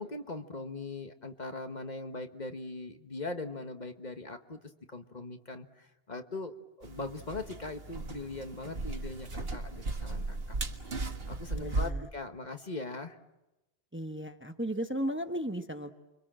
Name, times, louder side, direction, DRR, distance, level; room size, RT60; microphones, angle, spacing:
voice 1, 0.0-4.6 4.9-10.4 11.3-13.2, left 2 dB, 45° left, 6 dB, 1.5 m, -40 dB
sound 1, 6.8-11.9, right 2 dB, 65° right, 1.9 m, -36 dB
voice 2, 11.5-12.1 13.9-15.9, equal, 10° right, 7 dB, 1.1 m, -35 dB
30.0 x 24.5 x 7.6 m, 0.99 s
omnidirectional pair, 1.1 m